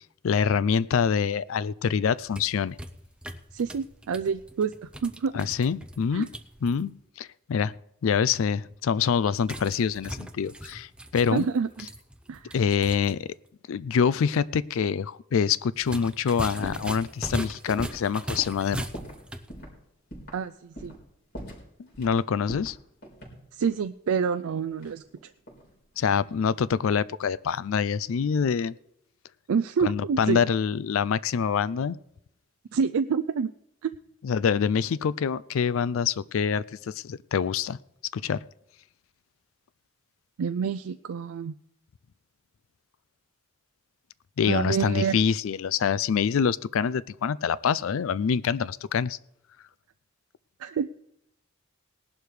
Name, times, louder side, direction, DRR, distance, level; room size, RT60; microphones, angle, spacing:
voice 1, 0.2-2.8 5.3-6.3 6.6-6.9 7.2-7.7 8.0-11.5 12.5-13.3 13.7-18.9 22.0-22.8 26.0-28.7 29.8-32.0 34.2-37.8 38.1-38.4 44.4-49.2, left 6 dB, 75° left, 19 dB, 0.4 m, -25 dB
sound 1, 2.1-6.8 9.4-13.2 13.5-13.6 15.8-19.5, right 1 dB, 5° right, 0.5 m, -39 dB
voice 2, 3.5-5.3 6.1-6.3 11.3-11.9 12.3-12.6 20.3-20.9 23.5-25.0 29.5-30.4 32.7-33.5 33.8-33.9 40.4-41.5 44.5-45.2 50.6-50.9, right 6 dB, 85° right, 10 dB, 0.4 m, -27 dB
sound 2, 16.6-16.9 17.2-19.2 19.5-19.7 20.1-20.4 20.8-21.0 21.3-22.2 22.5-23.8 24.8-25.7 26.0-26.4, equal, 50° left, 4.0 m, -42 dB
19.0 x 11.5 x 3.2 m, 0.77 s
head